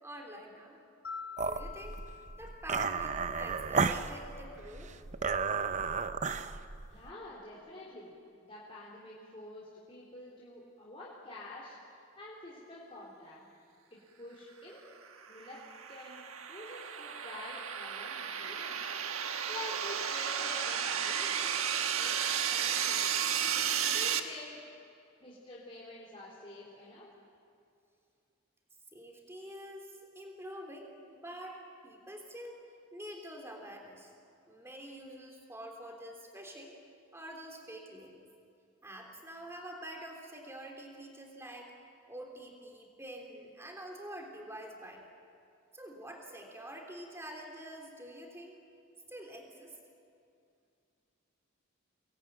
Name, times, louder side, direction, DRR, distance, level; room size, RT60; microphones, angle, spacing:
voice 1, 0.0-0.8 1.4-2.0 2.4-4.9 28.9-32.6 32.9-34.1 34.5-36.7 37.1-38.2 38.8-41.7 42.1-45.1 45.7-48.6 49.1-49.8, right 1 dB, 10° right, 1 dB, 3.3 m, -47 dB
Mallet percussion, 1.0-3.4, left 6 dB, 85° left, 2.8 m, -47 dB
sound 1, 1.4-7.1, right 5 dB, 35° right, 0.6 m, -33 dB
voice 2, 6.9-8.1 8.4-11.8 12.2-13.4 13.9-15.0 15.3-15.6 15.9-16.2 16.5-19.1 19.5-21.6 22.0-22.1 22.5-23.1 23.9-24.6 25.2-27.1, left 1 dB, 25° left, -7 dB, 3.6 m, -48 dB
sound 2, 15.2-24.2, right 8 dB, 85° right, 1.4 m, -33 dB
24.5 x 20.0 x 9.3 m, 2.4 s
head